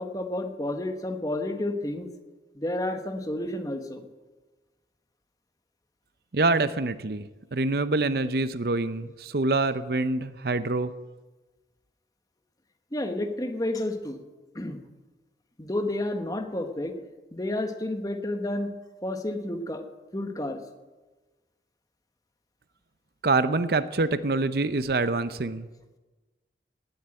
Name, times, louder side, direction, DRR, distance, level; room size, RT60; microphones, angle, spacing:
voice 1, 0.0-2.1 2.5-4.0 12.9-14.2 14.5-14.8 15.6-17.0 17.3-18.7 19.0-19.8 20.1-20.6, left 1 dB, 20° left, 6 dB, 1.3 m, -30 dB
voice 2, 6.3-10.9 23.2-25.7, right 3 dB, 55° right, 13 dB, 0.7 m, -26 dB
18.0 x 8.0 x 9.0 m, 1.2 s
head